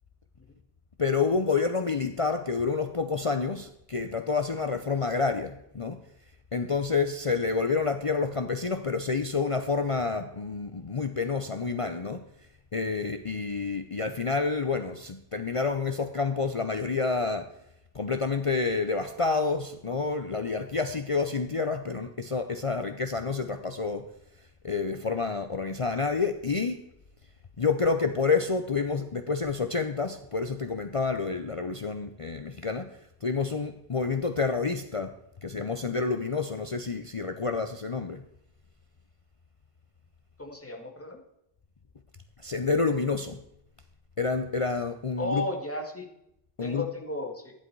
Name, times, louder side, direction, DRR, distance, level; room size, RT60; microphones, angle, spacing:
voice 1, 1.0-6.0 6.5-12.2 12.7-17.5 17.9-24.1 24.6-26.9 27.6-38.2 42.4-43.4 44.2-45.4 46.6-46.9, left 4 dB, 35° left, 7 dB, 0.7 m, -29 dB
voice 2, 40.4-41.2 45.2-46.1 46.6-47.5, left 2 dB, 15° left, 1 dB, 2.0 m, -34 dB
13.0 x 11.0 x 4.7 m, 0.78 s
omnidirectional pair, 1.1 m